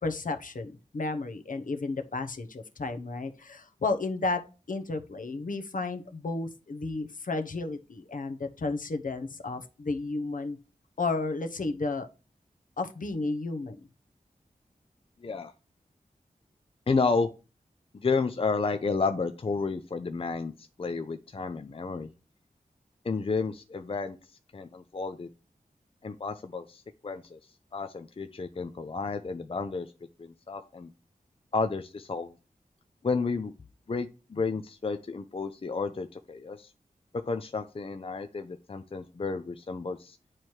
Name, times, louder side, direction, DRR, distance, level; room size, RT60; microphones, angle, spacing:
voice 1, 0.0-4.4 4.7-10.6 11.0-12.1 12.8-13.8, left 3 dB, 65° left, 7 dB, 0.9 m, -32 dB
voice 2, 15.2-15.5 16.9-17.3 17.9-22.1 23.0-24.2 24.5-25.3 26.0-27.4 27.7-29.9 30.2-30.9 31.5-32.3 33.0-33.5 33.9-36.7 37.1-40.2, left 4 dB, 40° left, 8 dB, 0.5 m, -31 dB
8.9 x 3.2 x 4.4 m, 0.32 s
wide cardioid pair, 70°, 15 cm